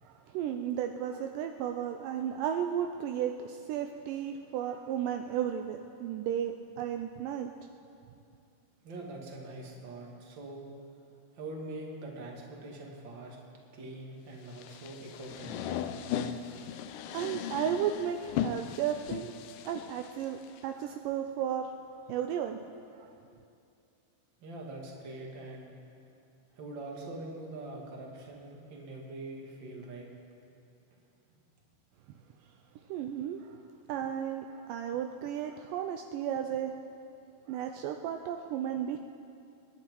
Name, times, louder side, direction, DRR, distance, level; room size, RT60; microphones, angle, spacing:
voice 1, 0.0-7.5 16.5-16.7 17.1-19.3 19.6-21.7 22.1-22.6 22.9-23.1 32.9-33.6 33.9-36.7 37.5-39.0, right 9 dB, 85° right, 5 dB, 1.9 m, -34 dB
voice 2, 8.8-10.7 11.3-13.4 13.7-15.9 24.4-25.7 26.5-30.1, right 2 dB, 40° right, -1 dB, 2.0 m, -43 dB
sound 1, 14.5-20.6, left 9 dB, 90° left, 1.8 m, -37 dB
26.0 x 10.5 x 4.6 m, 2.6 s
omnidirectional pair, 4.5 m